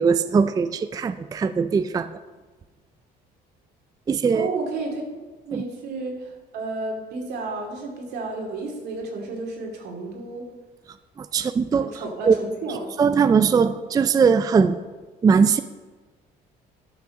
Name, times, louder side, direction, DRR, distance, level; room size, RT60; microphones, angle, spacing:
voice 1, 0.0-2.1 4.1-4.5 5.5-5.6 11.2-11.9 12.2-12.4 13.0-14.8 15.2-15.6, right 5 dB, 20° right, 12 dB, 0.3 m, -20 dB
voice 2, 4.3-5.1 5.4-10.4 11.8-12.9, right 3 dB, 75° right, 1 dB, 2.5 m, -32 dB
11.5 x 5.7 x 6.3 m, 1.3 s
cardioid pair, 110°, 17 cm